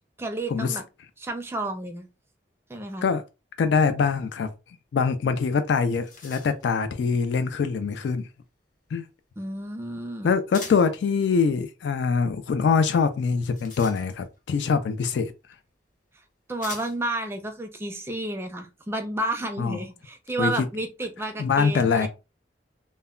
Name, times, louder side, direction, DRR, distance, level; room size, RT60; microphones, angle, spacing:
voice 1, 0.2-0.8 1.2-2.1 2.7-3.1 9.4-10.4 16.5-22.1, right 2 dB, 15° right, 0.4 m, -31 dB
voice 2, 3.6-4.5 4.9-8.3 8.9-9.1 10.2-15.3 19.6-19.8 20.4-20.5 21.4-22.1, left 5 dB, 75° left, 0.3 m, -23 dB
sound 1, 5.8-6.8 10.5-11.0 13.2-14.4 15.5-15.6 16.6-17.2, left 4 dB, 45° left, 0.7 m, -42 dB
2.1 x 2.1 x 3.5 m
head